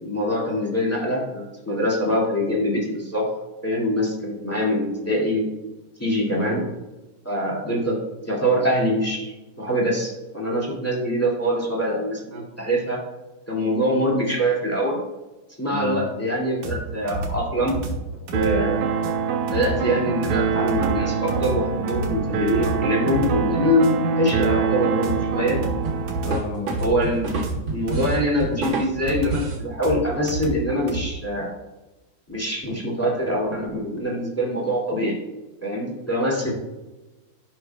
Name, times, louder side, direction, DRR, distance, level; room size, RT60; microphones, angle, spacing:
voice 1, 0.0-3.3 3.6-5.5 6.0-6.6 7.2-8.0 8.3-13.0 13.5-15.0 15.6-17.8 18.3-18.8 19.5-25.6 26.8-27.3 27.7-31.5 32.3-35.2 35.6-36.5, equal, 5° left, -3 dB, 1.4 m, -24 dB
voice 2, 6.3-6.7 15.7-16.1 26.2-26.7 36.4-36.5, left 3 dB, 35° left, -3 dB, 1.9 m, -30 dB
sound 1, 16.6-31.0, right 2 dB, 65° right, 2.7 m, -31 dB
sound 2, 18.3-26.3, right 6 dB, 90° right, 1.6 m, -25 dB
sound 3, 25.8-29.6, right 3 dB, 45° right, 1.9 m, -29 dB
13.5 x 6.0 x 2.3 m, 1.1 s
omnidirectional pair, 4.2 m